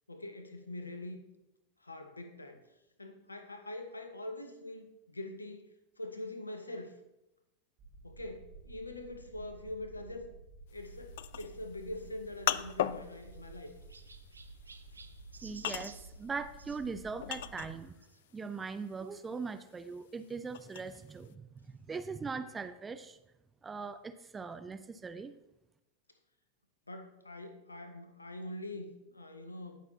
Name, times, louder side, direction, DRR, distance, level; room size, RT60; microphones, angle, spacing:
voice 1, 0.1-1.2 1.8-2.6 3.0-5.6 6.0-6.9 8.0-10.3 10.7-13.7 26.9-29.8, left 1 dB, 80° left, 8 dB, 0.9 m, -44 dB
sound 1, 7.8-17.8, right 2 dB, 35° right, 3.5 m, -52 dB
sound 2, 10.7-18.1 18.4-21.3, left 12 dB, 55° left, 0.3 m, -38 dB
Chirp tweet, 12.6-16.8 18.0-18.2 18.9-19.0 19.2-19.3 20.6-20.7, right 4 dB, 75° right, 0.5 m, -55 dB
voice 2, 15.4-18.0 18.3-23.2 23.6-25.3, right 4 dB, 15° right, 10 dB, 0.5 m, -41 dB
17.5 x 6.2 x 2.8 m, 0.93 s
figure-of-eight pair, 90°, 0 cm